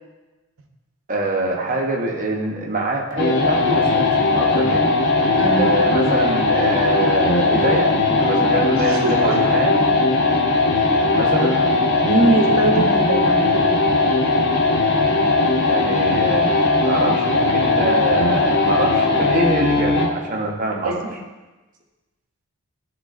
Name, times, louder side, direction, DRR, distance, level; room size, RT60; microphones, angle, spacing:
voice 1, 1.1-4.9 5.6-9.8 11.1-11.6 15.6-16.6 16.8-21.0, right 1 dB, 35° right, -1 dB, 0.8 m, -24 dB
sound 1, 3.2-20.2, left 3 dB, 50° left, 0.6 m, -18 dB
voice 2, 8.7-9.3 12.0-14.0 20.8-21.1, right 2 dB, 75° right, 3 dB, 0.7 m, -22 dB
10.0 x 3.8 x 2.5 m, 1.2 s
head